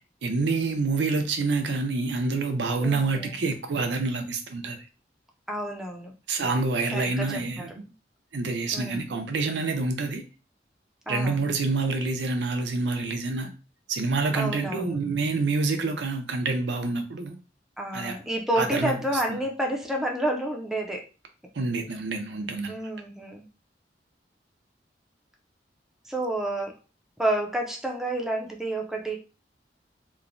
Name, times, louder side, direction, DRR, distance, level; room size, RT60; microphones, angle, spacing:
voice 1, 0.2-4.8 6.3-7.7 8.3-10.2 11.1-13.5 13.9-17.4 17.9-18.2 18.6-19.0 21.5-22.7, right 3 dB, 80° right, 0.5 m, -27 dB
voice 2, 2.8-3.4 5.5-6.1 6.9-7.7 8.7-9.1 11.1-11.4 14.3-15.0 17.8-21.1 22.7-23.4 26.1-26.8 27.2-29.2, right 1 dB, 5° right, 0.4 m, -29 dB
3.0 x 2.1 x 2.5 m
head